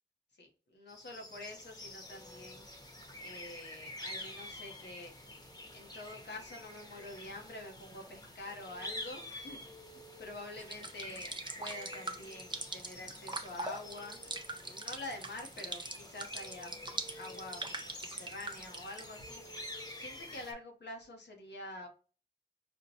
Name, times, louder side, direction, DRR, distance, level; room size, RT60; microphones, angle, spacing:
voice 1, 0.4-2.6 3.2-5.1 5.7-9.6 10.2-14.2 14.6-19.4 20.0-21.9, left 2 dB, 85° left, 2 dB, 0.9 m, -47 dB
sound 1, 0.9-20.5, left 1 dB, 20° left, 0.9 m, -48 dB
sound 2, 10.6-19.0, right 2 dB, 25° right, 0.6 m, -42 dB
4.4 x 2.2 x 2.7 m, 0.39 s
cardioid pair, 45°, 17 cm